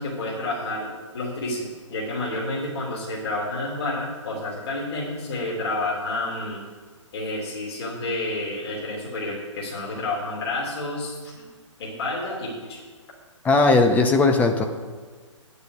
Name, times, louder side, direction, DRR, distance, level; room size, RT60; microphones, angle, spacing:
voice 1, 0.0-6.6 7.1-11.5 11.8-12.8, left 2 dB, 50° left, -5 dB, 3.4 m, -30 dB
voice 2, 13.4-14.7, left 3 dB, 10° left, 4 dB, 0.7 m, -18 dB
9.5 x 6.8 x 8.2 m, 1.5 s
figure-of-eight pair, 130°, 17 cm